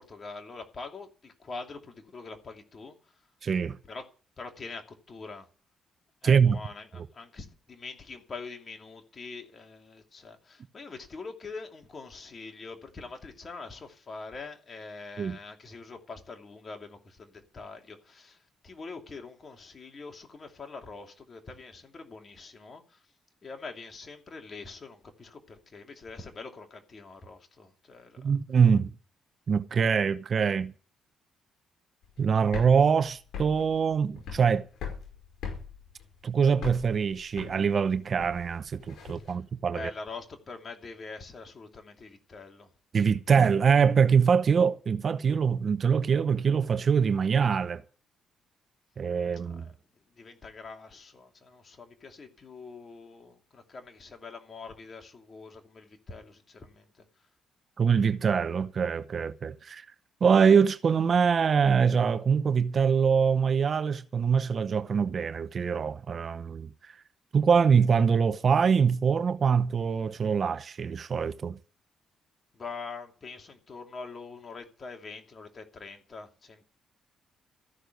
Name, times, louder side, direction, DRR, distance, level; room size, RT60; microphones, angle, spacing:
voice 1, 0.0-3.1 3.8-4.1 4.4-5.5 6.2-23.0 23.4-28.3 39.3-39.4 39.7-42.7 49.4-49.7 50.2-57.0 72.5-76.6, left 4 dB, 40° left, 2.7 m, -44 dB
voice 2, 3.4-3.8 6.2-6.6 7.0-7.1 15.2-15.4 28.2-28.9 29.5-30.7 32.2-34.7 36.2-39.9 42.9-47.8 49.0-49.7 57.8-59.8 60.2-66.9 67.3-71.6, right 6 dB, 45° right, 0.7 m, -24 dB
sound 1, 32.0-39.3, left 6 dB, 75° left, 5.6 m, -41 dB
14.0 x 6.6 x 9.2 m
cardioid pair, 90°, 0 cm